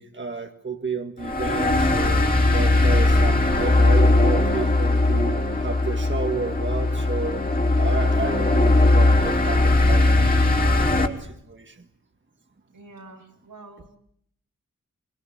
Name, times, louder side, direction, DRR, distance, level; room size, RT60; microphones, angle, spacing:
voice 1, 0.0-2.3 2.5-7.4 7.7-10.6 11.0-11.8, right 4 dB, 35° right, 5 dB, 1.8 m, -31 dB
sound 1, 1.2-11.1, left 2 dB, 25° left, 3.4 m, -19 dB
voice 2, 12.7-13.9, right 2 dB, 85° right, 2 dB, 6.1 m, -46 dB
24.5 x 23.5 x 8.5 m, 0.69 s
wide cardioid pair, 80°, 33 cm